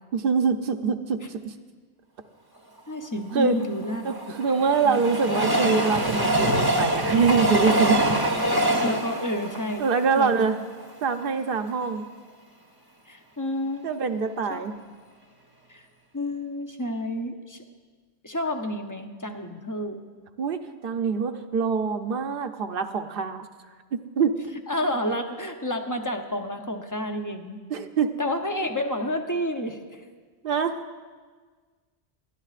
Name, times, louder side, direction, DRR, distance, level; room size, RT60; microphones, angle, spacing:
voice 1, 0.1-1.5 3.3-3.6 4.0-8.0 9.8-10.6 11.0-12.1 13.8-14.7 20.4-23.4 23.9-24.4 27.7-28.2 30.4-30.8, right 5 dB, 60° right, 7 dB, 0.9 m, -24 dB
voice 2, 2.9-4.1 4.8-5.1 8.5-9.9 10.2-10.4 13.1-13.9 14.5-14.6 15.7-15.9 16.1-17.6 18.2-20.0 24.7-27.6 28.2-30.0, left 1 dB, 20° left, 5 dB, 0.7 m, -30 dB
Train, 3.6-10.9 11.4-11.5 11.7-11.8, right 1 dB, 25° right, 0.8 m, -24 dB
20.5 x 13.0 x 2.5 m, 1.5 s
omnidirectional pair, 1.1 m